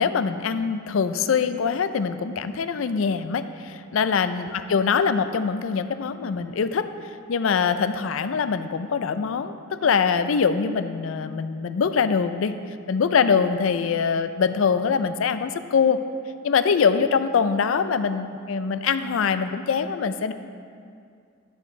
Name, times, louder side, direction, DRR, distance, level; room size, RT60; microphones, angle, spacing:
voice 1, 0.0-6.9 7.3-12.5 12.9-16.0 16.4-20.3, left 6 dB, 75° left, 11 dB, 0.4 m, -23 dB
11.0 x 7.7 x 3.2 m, 2.3 s
head